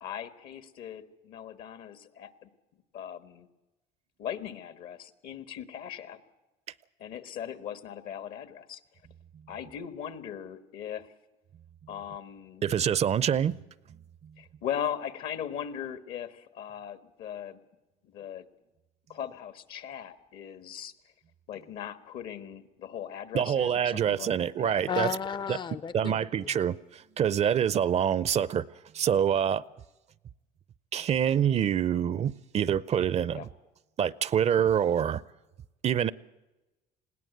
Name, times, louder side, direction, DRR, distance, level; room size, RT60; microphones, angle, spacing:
voice 1, 0.0-2.5 2.9-3.5 4.2-6.2 7.0-8.8 9.5-11.1 11.9-12.6 14.4-17.6 18.0-18.5 19.1-20.9 21.5-24.8 33.3-33.5, left 9 dB, 70° left, 1.5 m, -39 dB
voice 2, 12.6-13.6 23.3-25.1 25.5-25.6 25.9-28.7 28.9-29.6 30.9-33.5 34.0-35.2 35.8-36.1, right 9 dB, 45° right, 0.6 m, -26 dB
voice 3, 24.9-26.1, left 7 dB, 30° left, 0.6 m, -32 dB
20.5 x 17.0 x 8.0 m
supercardioid pair, 90°, 16 cm